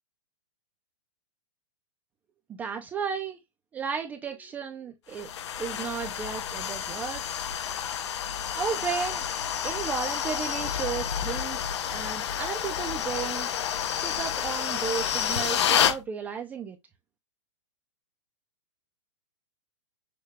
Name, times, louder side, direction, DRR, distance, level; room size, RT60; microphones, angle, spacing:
voice 1, 2.6-3.4 3.7-7.4 8.5-9.3 9.6-13.5 14.0-16.8, right 6 dB, 10° right, 0.4 m, -34 dB
sound 1, 5.1-16.0, left 9 dB, 55° left, 0.7 m, -29 dB
6.5 x 2.3 x 3.4 m
hypercardioid pair, 165°, 17 cm